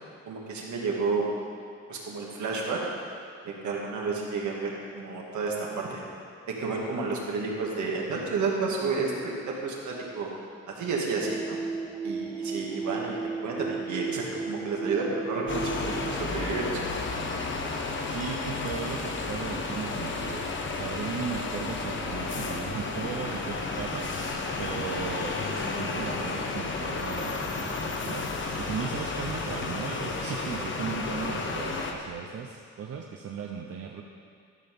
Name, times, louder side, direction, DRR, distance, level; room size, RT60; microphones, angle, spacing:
voice 1, 0.3-1.3 1.9-2.8 3.4-6.0 6.6-10.3 10.8-11.6 12.0-16.7, right 4 dB, 70° right, -2 dB, 2.1 m, -31 dB
sound 1, 11.2-16.2, right 4 dB, 5° right, 0.4 m, -34 dB
sound 2, 15.5-31.9, left 3 dB, 40° left, 1.1 m, -32 dB
voice 2, 18.1-28.3 28.7-34.0, right 6 dB, 50° right, 1 dB, 0.8 m, -37 dB
13.0 x 5.7 x 5.4 m, 2.2 s
cardioid pair, 90°, 30 cm